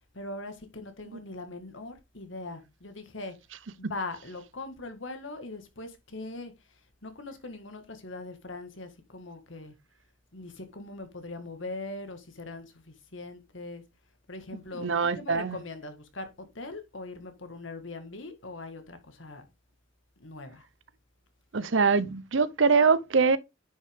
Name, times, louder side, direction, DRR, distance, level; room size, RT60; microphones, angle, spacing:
voice 1, 0.1-3.4 3.8-6.5 7.0-9.8 10.3-13.8 14.3-19.5 20.2-20.7, left 2 dB, 70° left, 1.9 m, -41 dB
voice 2, 14.8-15.6 21.5-23.4, right 5 dB, 70° right, 0.7 m, -23 dB
10.0 x 5.5 x 3.6 m
head